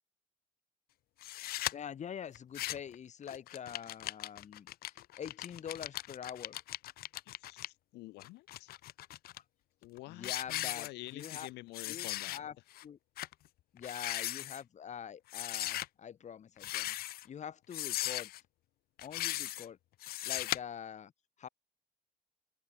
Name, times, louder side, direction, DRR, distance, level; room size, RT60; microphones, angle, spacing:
sound 1, 1.2-1.7 2.3-2.9 3.3-7.7 8.2-9.4 9.8-10.0 10.2-11.5 11.7-12.4 12.7-12.8 13.2-13.3 13.8-14.6 15.3-15.9 16.6-17.3 17.7-18.4 19.0-19.7 20.0-20.6, left 15 dB, 65° left, 0.6 m, -38 dB
voice 1, 1.7-4.7 5.2-6.6 10.1-10.9 11.1-11.5 11.9-12.5 12.8-13.0 13.7-17.0 17.2-18.3 19.0-19.8 20.2-21.1 21.4-21.5, left 8 dB, 45° left, 2.3 m, -45 dB
voice 2, 7.2-8.8 9.8-12.6, left 20 dB, 90° left, 1.2 m, -49 dB
cardioid pair, 110°, 17 cm